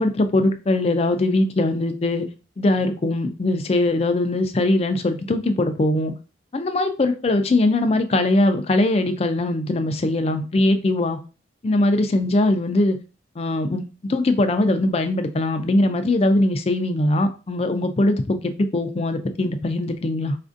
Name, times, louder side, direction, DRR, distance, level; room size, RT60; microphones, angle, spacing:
voice 1, 0.0-2.3 2.6-6.1 6.5-11.2 11.6-13.0 13.4-20.4, left 2 dB, 35° left, 0.4 m, -21 dB
4.2 x 2.5 x 2.5 m
head